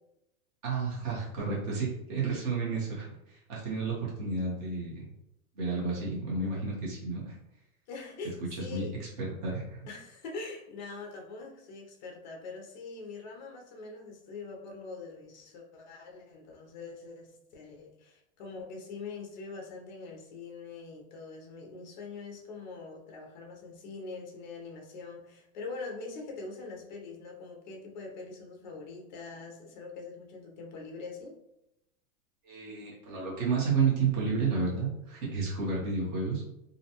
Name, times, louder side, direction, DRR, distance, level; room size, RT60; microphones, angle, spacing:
voice 1, 0.6-5.0 5.6-7.4 8.6-9.8 32.4-36.4, right 4 dB, 30° right, -4 dB, 0.7 m, -31 dB
voice 2, 7.9-9.0 9.9-31.3, left 4 dB, 35° left, 0 dB, 0.5 m, -43 dB
2.6 x 2.1 x 2.8 m, 0.84 s
supercardioid pair, 160°, 43 cm